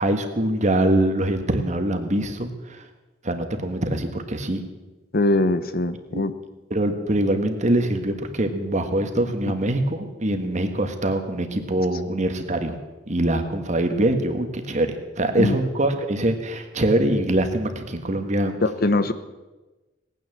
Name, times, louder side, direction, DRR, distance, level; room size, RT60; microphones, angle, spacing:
voice 1, 0.0-2.5 3.2-4.6 6.1-6.2 6.7-12.7 13.1-18.6, right 1 dB, 40° right, 6 dB, 1.6 m, -23 dB
voice 2, 5.1-6.3 15.4-15.5 18.6-19.1, left 2 dB, 50° left, 12 dB, 0.8 m, -21 dB
18.0 x 9.5 x 7.3 m, 1.1 s
head